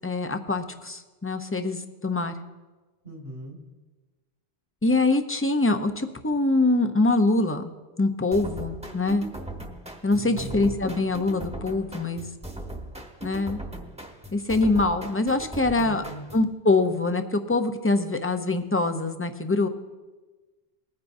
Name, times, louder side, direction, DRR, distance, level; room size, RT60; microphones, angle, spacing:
voice 1, 0.0-2.3 4.8-7.7 8.0-9.3 10.0-12.2 13.2-13.6 14.3-16.0 16.3-19.7, left 2 dB, 15° left, 7 dB, 0.5 m, -24 dB
voice 2, 3.0-3.6 10.1-10.7 15.7-16.2, right 1 dB, 60° right, 0 dB, 2.1 m, -38 dB
sound 1, 8.3-16.5, right 1 dB, 5° right, 1.1 m, -39 dB
21.0 x 9.6 x 2.6 m, 1.3 s
omnidirectional pair, 1.1 m